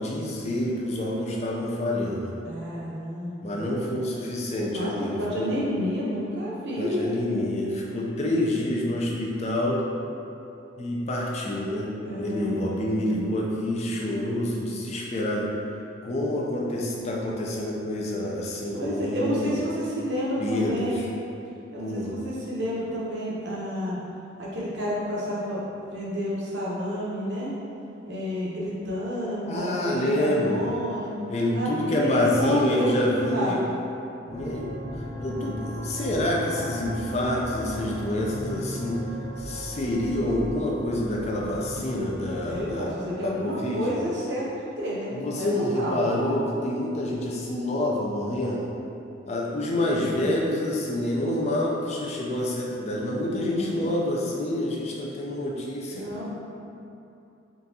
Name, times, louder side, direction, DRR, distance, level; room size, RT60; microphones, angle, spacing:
voice 1, 0.0-2.3 3.4-5.5 6.8-9.8 10.8-15.5 16.0-19.6 20.4-20.9 21.8-22.2 29.5-30.7 31.3-33.6 34.3-34.7 35.2-39.0 39.4-42.9 43.2-43.8 45.1-48.7 49.3-56.1, left 1 dB, 30° left, -3 dB, 0.4 m, -27 dB
voice 2, 2.4-3.7 4.7-7.1 12.0-13.3 18.7-21.0 21.7-24.0 24.4-25.6 25.9-27.5 28.1-31.1 31.5-33.8 42.4-44.4 44.8-46.0 49.8-50.4 53.3-53.8 55.9-56.3, equal, 55° right, -7 dB, 0.8 m, -30 dB
sound 1, 34.3-42.7, equal, 35° right, 0.5 m, -36 dB
3.8 x 3.5 x 2.7 m, 2.8 s
head